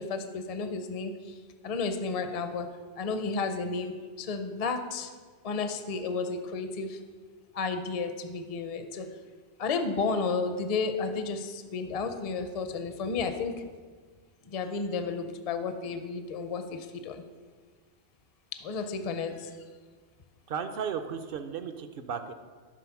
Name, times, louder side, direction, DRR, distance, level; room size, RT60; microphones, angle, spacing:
voice 1, 0.0-1.4 1.6-2.7 3.0-5.1 5.4-7.0 7.5-9.1 9.6-13.6 14.4-17.2 18.5-19.5, left 4 dB, 45° left, 7 dB, 0.5 m, -32 dB
voice 2, 20.5-22.3, right 7 dB, 60° right, 9 dB, 0.7 m, -35 dB
11.0 x 4.0 x 5.8 m, 1.5 s
omnidirectional pair, 1.2 m